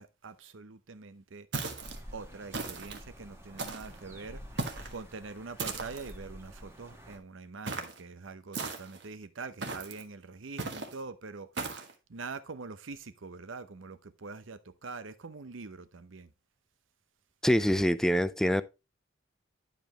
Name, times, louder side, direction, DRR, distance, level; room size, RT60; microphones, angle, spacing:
voice 1, 0.0-1.5 2.1-4.4 4.9-16.3, right 4 dB, 80° right, 0.8 m, -44 dB
sound 1, 1.5-2.0 2.5-3.0 3.6-4.0 4.6-5.0 5.6-6.1 7.7-8.0 8.5-9.0 9.6-10.0 10.6-10.9 11.6-11.9, right 3 dB, 60° right, 1.5 m, -37 dB
sound 2, 1.8-7.2, equal, 15° right, 1.5 m, -49 dB
voice 2, 17.4-18.6, equal, 5° left, 0.4 m, -25 dB
11.0 x 5.2 x 3.0 m
head